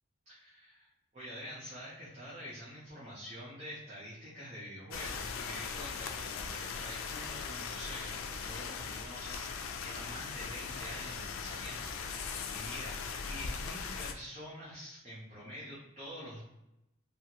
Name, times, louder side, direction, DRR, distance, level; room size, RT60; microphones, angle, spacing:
voice 1, 0.3-0.9 1.1-13.0 13.3-16.4, equal, 35° right, -8 dB, 0.7 m, -46 dB
sound 1, 4.9-14.1, left 5 dB, 85° left, 0.3 m, -39 dB
2.8 x 2.4 x 2.8 m, 0.88 s
head